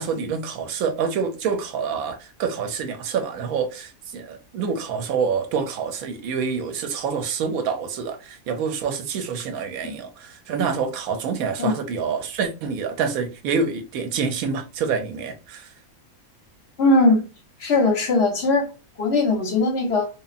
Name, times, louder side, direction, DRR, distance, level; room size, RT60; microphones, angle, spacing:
voice 1, 0.0-15.7, right 6 dB, 90° right, 1.1 m, -27 dB
voice 2, 16.8-17.2 17.6-18.7 19.0-20.1, left 2 dB, 55° left, 0.9 m, -19 dB
2.9 x 2.4 x 2.4 m
omnidirectional pair, 1.5 m